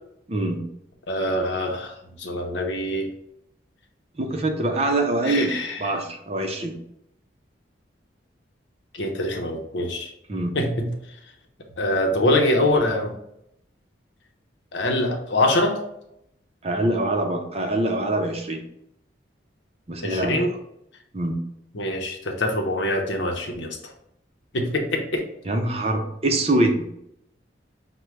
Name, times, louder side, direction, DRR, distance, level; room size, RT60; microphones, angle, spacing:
voice 1, 0.3-0.6 4.2-6.8 10.3-10.5 16.6-18.6 19.9-20.4 21.1-21.4 25.5-26.8, right 2 dB, 35° right, 4 dB, 0.6 m, -24 dB
voice 2, 1.1-3.1 5.2-5.8 8.9-10.1 10.5-10.9 11.8-13.1 14.7-15.8 20.0-20.5 21.7-23.8 24.5-25.2, left 1 dB, 75° left, 2 dB, 0.8 m, -24 dB
6.0 x 2.2 x 3.3 m, 0.77 s
head